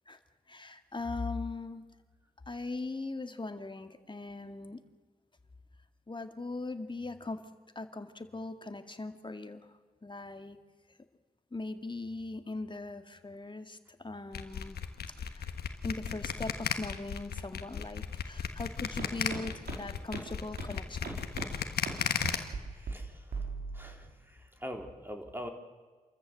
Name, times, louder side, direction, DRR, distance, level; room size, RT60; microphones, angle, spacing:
voice 1, 0.5-1.8 2.5-4.8 6.1-7.4 7.8-10.6 11.5-14.8 15.2-15.5 15.8-21.2, left 3 dB, 30° left, 8 dB, 2.0 m, -40 dB
sound 1, 14.3-22.4, left 7 dB, 80° left, 1.5 m, -34 dB
sound 2, 19.0-19.1 19.3-19.4 19.7-19.8 20.1-20.2 20.6-20.7 21.0-21.5 21.9-22.0 22.2-22.6 22.9-23.0 23.3-23.8, right 4 dB, 80° right, 4.3 m, -37 dB
voice 2, 22.6-23.5 23.7-25.5, equal, 15° right, 3 dB, 4.0 m, -44 dB
27.5 x 14.0 x 7.7 m, 1.4 s
supercardioid pair, 45°, 16 cm